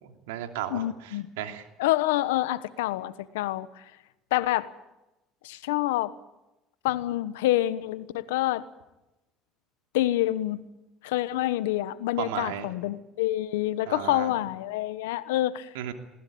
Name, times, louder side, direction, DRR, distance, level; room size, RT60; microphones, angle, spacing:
voice 1, 0.0-1.7 12.2-12.7 13.9-14.3 15.7-15.9, right 10 dB, 90° right, 6 dB, 2.8 m, -35 dB
voice 2, 0.7-1.3 1.8-3.8 4.3-4.7 5.4-6.1 6.8-8.6 9.9-10.6 11.0-15.7, left 15 dB, 90° left, 15 dB, 1.2 m, -27 dB
20.5 x 19.0 x 8.7 m, 0.95 s
supercardioid pair, 85°, 0 cm